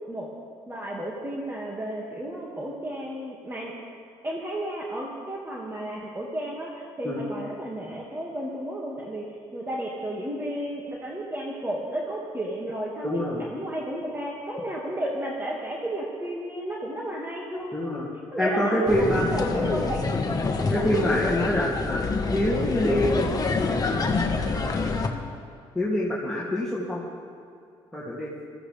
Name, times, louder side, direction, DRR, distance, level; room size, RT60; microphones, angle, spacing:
voice 1, 0.7-3.7 4.2-13.2 13.5-17.8 18.3-20.0, right 1 dB, 20° right, -3 dB, 2.2 m, -33 dB
voice 2, 13.0-13.5 17.7-18.1 18.4-19.3 20.7-22.0 22.3-23.3 23.6-23.9 24.5-25.0 25.7-27.0 27.9-28.3, left 1 dB, 5° left, -8 dB, 2.8 m, -26 dB
sound 1, 18.9-25.1, left 4 dB, 35° left, 1.5 m, -26 dB
19.0 x 15.0 x 3.5 m, 2.4 s
supercardioid pair, 70°, 11 cm